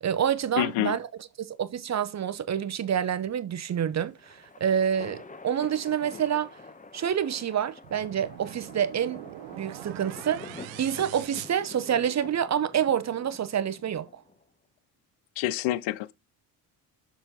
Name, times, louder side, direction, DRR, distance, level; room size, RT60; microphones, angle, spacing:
voice 1, 0.0-1.1 1.4-6.5 6.9-9.2 9.6-14.2, right 9 dB, 35° right, 0.7 m, -28 dB
voice 2, 0.6-1.0 15.4-16.1, left 15 dB, 80° left, 0.7 m, -27 dB
sound 1, 4.0-14.4, left 3 dB, 15° left, 0.9 m, -47 dB
sound 2, 7.8-12.4, right 16 dB, 80° right, 0.7 m, -43 dB
6.7 x 4.1 x 4.2 m
supercardioid pair, 65°, 45 cm